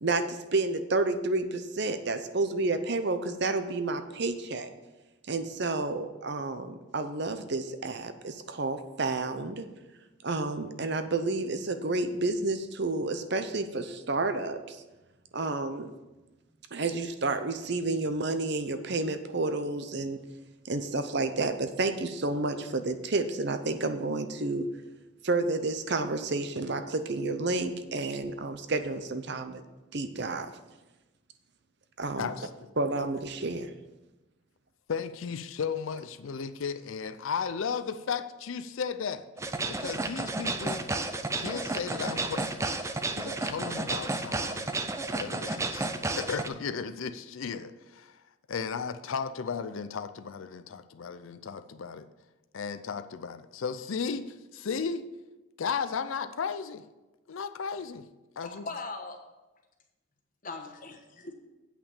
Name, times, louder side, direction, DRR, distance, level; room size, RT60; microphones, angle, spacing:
voice 1, 0.0-4.7 5.3-9.7 10.2-14.8 15.3-15.9 16.7-20.2 20.6-24.7 25.2-29.6 29.9-30.5 32.0-32.3 32.8-33.7, right 3 dB, 55° right, 9 dB, 0.7 m, -30 dB
voice 2, 32.2-32.5 34.9-39.3 39.7-40.9 41.4-42.6 43.1-44.7 45.1-45.9 46.2-48.2 48.5-52.1 52.5-55.1 55.6-56.8 57.3-58.0 58.4-58.6, left 6 dB, 70° left, 10 dB, 0.5 m, -35 dB
Electrosamba Beatbox, 39.4-46.5, right 2 dB, 15° right, 0.4 m, -32 dB
voice 3, 58.4-59.2 60.4-61.3, left 3 dB, 40° left, 4 dB, 1.2 m, -40 dB
8.4 x 5.8 x 7.1 m, 1.1 s
head